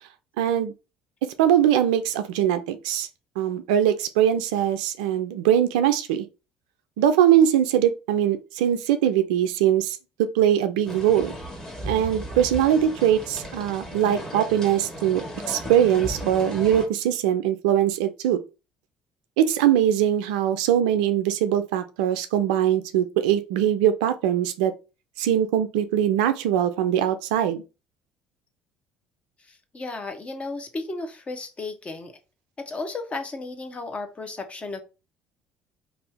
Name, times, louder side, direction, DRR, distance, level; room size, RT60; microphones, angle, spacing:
voice 1, 0.4-0.7 1.4-3.1 3.4-6.3 7.0-11.3 11.8-18.4 19.4-24.7 25.2-27.6, right 10 dB, 75° right, 0.4 m, -22 dB
sound 1, 10.8-16.9, equal, 10° left, 1.3 m, -35 dB
voice 2, 29.4-32.2 32.6-34.8, left 3 dB, 30° left, 0.8 m, -34 dB
2.6 x 2.4 x 3.4 m
hypercardioid pair, 60°, 4 cm